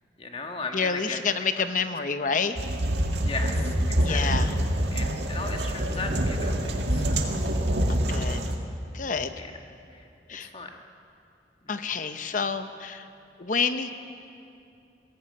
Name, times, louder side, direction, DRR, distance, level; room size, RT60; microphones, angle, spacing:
voice 1, 0.2-1.2 3.2-3.7 4.1-4.3 4.9-7.3 8.1-8.3 9.4-9.5 9.9-10.0 10.4-10.7, left 3 dB, 30° left, 3 dB, 1.4 m, -36 dB
voice 2, 0.7-2.6 4.0-4.5 7.9-8.4 8.9-9.3 10.3-10.5 11.7-13.1 13.4-13.9, left 5 dB, 45° left, 9 dB, 0.8 m, -28 dB
sound 1, 2.6-8.6, equal, 70° right, 2.0 m, -26 dB
21.5 x 16.0 x 8.9 m, 2.5 s
head